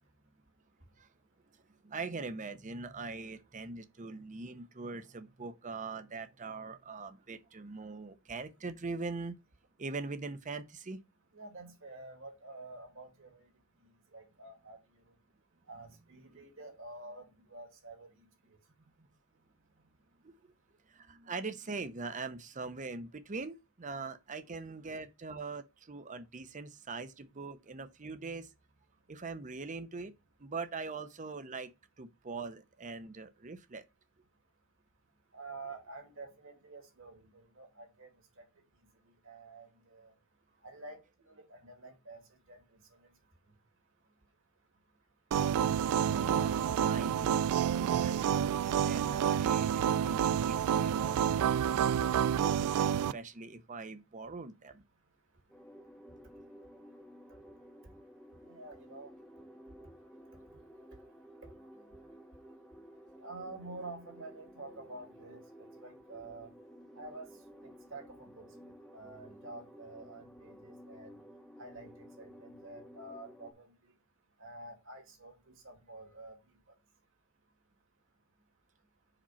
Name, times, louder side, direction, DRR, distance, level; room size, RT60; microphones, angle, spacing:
voice 1, 1.5-9.4 9.8-11.0 16.3-16.4 20.2-20.4 20.9-28.5 29.1-30.1 30.4-31.7 32.0-33.9 45.6-54.8, right 4 dB, 35° right, 0.7 m, -42 dB
voice 2, 11.3-13.4 14.1-14.8 15.7-18.1 24.8-25.0 35.3-38.1 39.2-40.1 40.6-42.2 42.5-42.8 58.5-59.1 63.2-66.5 67.0-67.3 67.6-68.5 68.9-71.2 71.6-73.7 74.4-76.4, right 2 dB, 60° right, 2.0 m, -49 dB
sound 1, 45.3-53.1, right 9 dB, 90° right, 0.3 m, -29 dB
sound 2, 55.5-73.5, equal, ahead, 0.8 m, -54 dB
5.0 x 4.2 x 5.6 m
head